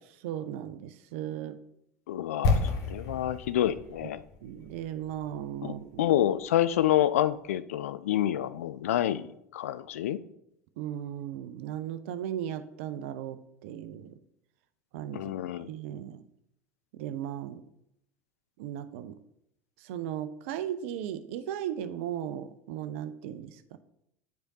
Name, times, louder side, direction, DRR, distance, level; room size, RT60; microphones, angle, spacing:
voice 1, 0.2-1.6 4.0-4.1 4.4-6.1 10.8-14.2 14.9-15.3 15.7-16.2 16.9-17.6 18.6-19.2 19.8-23.8, right 10 dB, 55° right, 11 dB, 0.5 m, -36 dB
voice 2, 2.1-4.2 5.6-10.2 15.1-15.7, left 12 dB, 65° left, 15 dB, 0.3 m, -28 dB
sound 1, 2.4-6.4 6.6-6.8, left 3 dB, 45° left, 1.3 m, -31 dB
9.1 x 4.9 x 2.8 m, 0.78 s
figure-of-eight pair, 75°, 8 cm